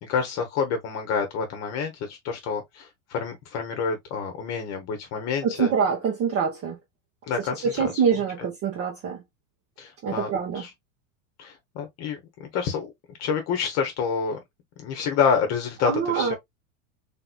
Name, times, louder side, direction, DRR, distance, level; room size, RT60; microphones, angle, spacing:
voice 1, 0.0-5.7 7.3-8.0 8.4-8.5 9.8-10.3 10.5-10.7 11.4-12.9 13.2-14.4 14.8-16.3, left 6 dB, 40° left, 1.0 m, -28 dB
voice 2, 5.4-6.8 7.8-9.2 10.0-10.6 15.8-16.3, right 6 dB, 35° right, 1.0 m, -25 dB
3.5 x 3.0 x 2.3 m
supercardioid pair, 140°, 40 cm